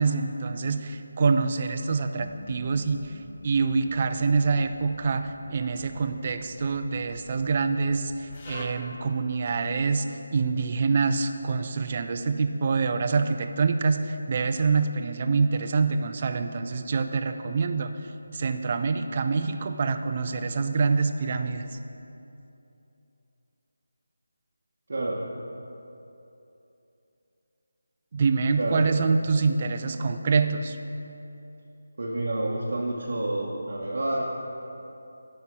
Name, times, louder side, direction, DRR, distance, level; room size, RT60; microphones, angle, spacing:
voice 1, 0.0-3.1 3.4-17.9 18.3-21.7 28.1-30.8, right 4 dB, 30° right, 8 dB, 0.3 m, -26 dB
sound 1, 2.2-8.6, left 2 dB, 20° left, 0.6 m, -47 dB
voice 2, 24.9-25.2 28.6-28.8 32.0-34.2, right 1 dB, 50° right, -5 dB, 0.9 m, -28 dB
8.2 x 5.4 x 4.6 m, 2.9 s
figure-of-eight pair, 175°, 0 cm